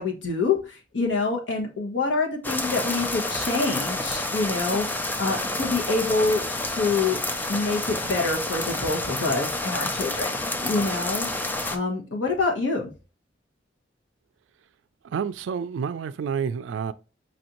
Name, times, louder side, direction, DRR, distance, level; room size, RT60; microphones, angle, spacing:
voice 1, 0.0-7.2 7.5-10.3 10.6-11.3 11.7-12.9, left 3 dB, 85° left, 1.1 m, -26 dB
sound 1, 2.4-11.8, left 2 dB, 10° left, 0.3 m, -29 dB
voice 2, 15.0-16.9, right 6 dB, 90° right, 0.3 m, -29 dB
4.9 x 2.6 x 2.9 m
head